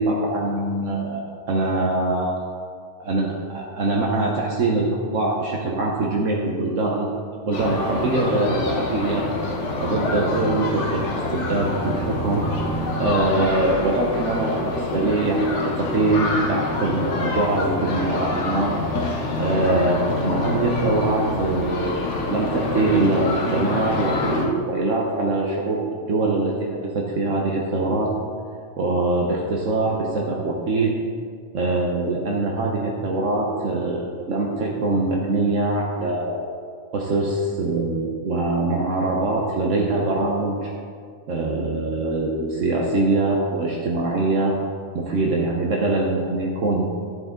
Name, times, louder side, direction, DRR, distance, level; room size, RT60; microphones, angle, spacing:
voice 1, 0.0-2.4 3.0-9.2 9.8-18.7 19.0-25.8 26.1-26.7 26.9-28.1 28.8-30.9 31.5-36.4 36.9-40.7 41.3-44.6 44.9-46.8, right 2 dB, 75° right, -2 dB, 1.3 m, -23 dB
sound 1, 7.5-24.5, left 2 dB, 65° left, 1.3 m, -26 dB
11.0 x 7.8 x 3.8 m, 2.1 s
omnidirectional pair, 1.3 m